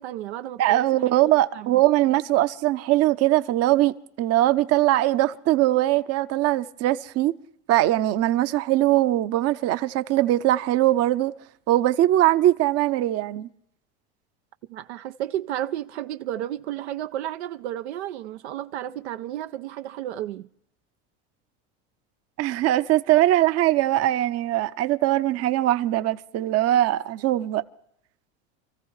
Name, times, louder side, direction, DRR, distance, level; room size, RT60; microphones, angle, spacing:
voice 1, 0.0-1.7 14.7-20.5, right 12 dB, 90° right, 0.5 m, -32 dB
voice 2, 0.6-7.3 7.7-11.3 11.7-13.5 22.4-27.6, right 15 dB, 50° right, 0.7 m, -21 dB
27.5 x 14.5 x 3.2 m
hypercardioid pair, 90°, 33 cm